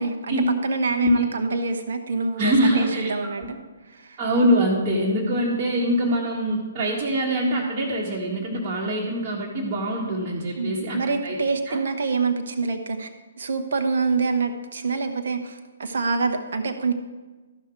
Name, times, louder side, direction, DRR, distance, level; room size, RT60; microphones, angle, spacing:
voice 1, 0.0-0.4 0.6-3.6 3.9-4.2 10.5-13.1 13.4-16.9, right 4 dB, 60° right, 5 dB, 1.0 m, -26 dB
voice 2, 2.4-3.5 4.2-11.4 11.7-11.8, equal, 30° right, -7 dB, 1.7 m, -24 dB
13.5 x 5.8 x 4.6 m, 1.3 s
figure-of-eight pair, 130°, 0 cm